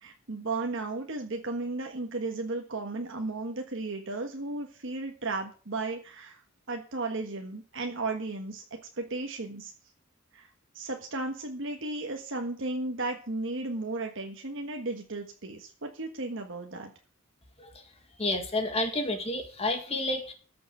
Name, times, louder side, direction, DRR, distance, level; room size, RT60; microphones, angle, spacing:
voice 1, 0.0-6.4 6.7-9.7 10.3-10.5 10.7-16.9, right 2 dB, 60° right, 3 dB, 1.5 m, -34 dB
voice 2, 17.6-17.9 18.2-20.3, left 2 dB, 30° left, 5 dB, 2.0 m, -30 dB
13.5 x 6.9 x 6.6 m, 0.40 s
head